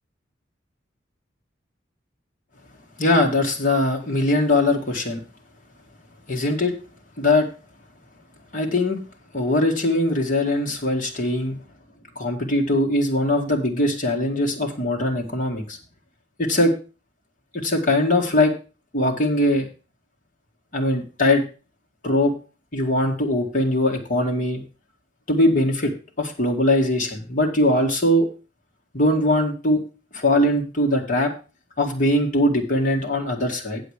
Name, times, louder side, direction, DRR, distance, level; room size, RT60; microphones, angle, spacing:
voice 1, 3.0-5.2 6.3-6.7 7.2-7.5 8.5-9.0 9.3-11.6 12.2-15.8 16.4-16.7 17.5-18.5 18.9-19.7 20.7-21.4 22.0-22.3 22.7-24.6 25.3-25.9 26.2-28.3 28.9-29.8 30.1-31.3 31.8-33.8, left 1 dB, 45° left, 0 dB, 1.8 m, -21 dB
8.5 x 7.6 x 4.8 m, 0.33 s
head